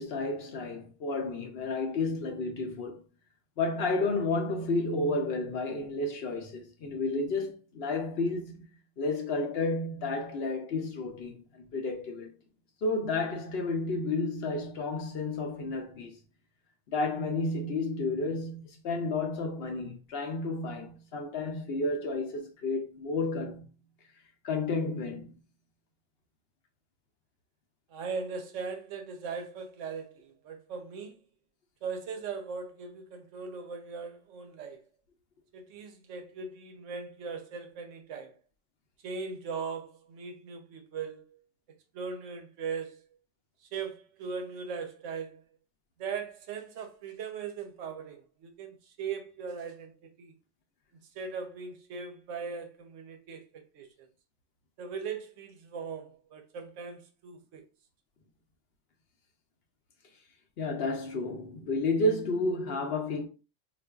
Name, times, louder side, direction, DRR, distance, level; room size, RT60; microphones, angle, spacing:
voice 1, 0.0-3.0 3.6-8.6 9.0-12.3 12.8-16.1 16.9-23.7 24.4-25.3 60.6-63.3, left 2 dB, 60° left, 0.8 m, -31 dB
voice 2, 27.9-31.2 31.8-34.8 35.5-38.4 39.0-41.4 41.9-43.0 43.6-45.4 46.0-50.4 51.1-54.1 54.8-57.6, right 5 dB, 85° right, 1.0 m, -39 dB
3.9 x 2.5 x 2.3 m
omnidirectional pair, 1.3 m